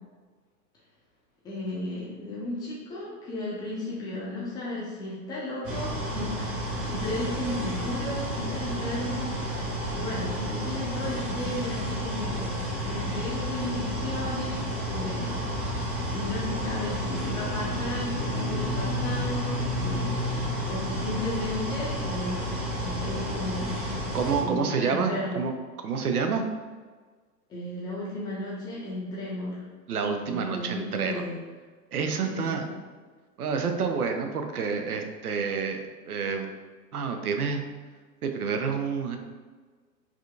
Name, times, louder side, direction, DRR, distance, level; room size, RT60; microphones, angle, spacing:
voice 1, 1.4-15.4 16.1-24.1 24.4-25.4 27.5-29.6 30.3-31.4 32.2-32.7, left 1 dB, 10° left, -7 dB, 0.6 m, -34 dB
sound 1, 5.6-24.4, equal, 20° right, 1.3 m, -31 dB
voice 2, 24.1-25.5 25.8-26.4 29.9-31.2 31.9-32.7 33.4-36.5 36.9-37.6 38.2-39.2, right 5 dB, 65° right, 5 dB, 0.6 m, -28 dB
4.8 x 2.7 x 2.4 m, 1.4 s
figure-of-eight pair, 105°, 50 cm